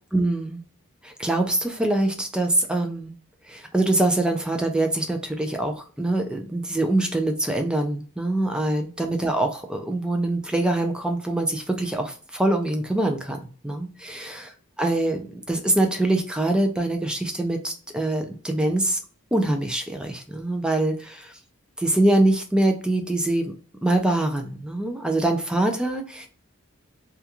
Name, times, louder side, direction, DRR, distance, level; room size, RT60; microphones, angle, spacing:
voice 1, 0.1-0.6 1.0-3.1 3.5-14.5 14.8-19.0 19.3-21.4 21.8-23.5 23.8-26.3, right 1 dB, 5° right, 4 dB, 0.3 m, -24 dB
2.4 x 2.2 x 2.8 m, 0.40 s
head